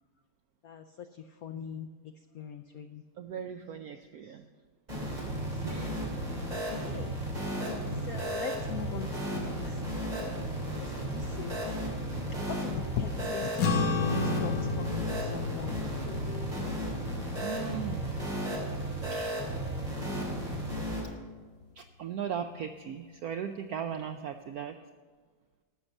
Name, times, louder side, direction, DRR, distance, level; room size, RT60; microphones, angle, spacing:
voice 1, 0.6-1.9 2.3-3.0 5.4-5.9 6.5-7.1 7.9-10.4 10.7-11.8 12.1-12.2 12.5-17.1, left 8 dB, 80° left, 7 dB, 0.8 m, -41 dB
voice 2, 1.5-1.9 3.2-4.4 5.6-6.1 17.3-18.2 19.1-19.3 21.8-24.8, right 8 dB, 80° right, 7 dB, 0.8 m, -38 dB
sound 1, 4.9-21.0, right 1 dB, 20° right, 3.0 m, -34 dB
sound 2, 13.6-20.2, left 4 dB, 55° left, 1.3 m, -34 dB
13.0 x 6.6 x 7.1 m, 1.5 s
omnidirectional pair, 2.1 m